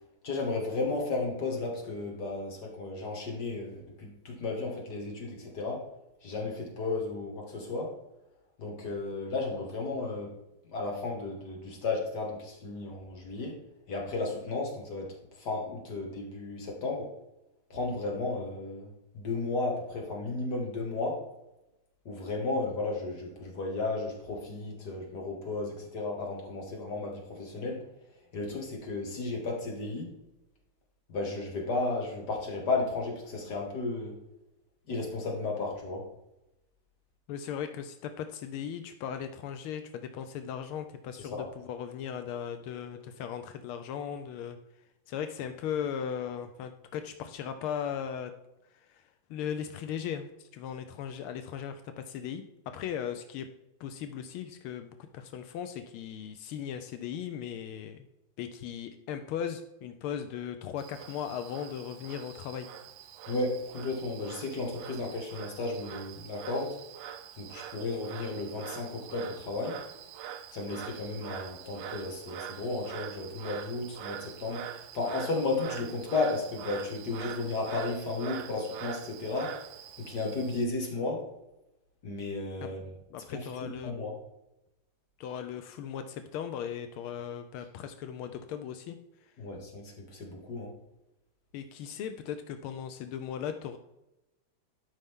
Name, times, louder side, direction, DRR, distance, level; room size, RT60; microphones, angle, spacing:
voice 1, 0.2-5.9 6.2-7.9 8.6-10.3 10.7-13.6 13.9-17.1 17.7-21.2 22.1-27.9 28.3-30.1 31.1-34.2 34.9-36.1 63.3-66.8 67.4-69.8 70.5-79.6 80.0-81.3 82.0-82.9 83.3-84.1 89.4-90.7, left 3 dB, 50° left, 0 dB, 2.4 m, -34 dB
voice 2, 37.3-44.6 45.1-48.3 48.7-53.5 53.8-58.0 58.4-62.7 82.6-82.7 83.1-83.9 85.2-89.3 91.5-93.8, left 8 dB, 85° left, 8 dB, 1.6 m, -38 dB
Frog, 60.8-80.6, right 9 dB, 70° right, 1.2 m, -44 dB
12.5 x 5.6 x 3.7 m, 0.92 s
omnidirectional pair, 2.3 m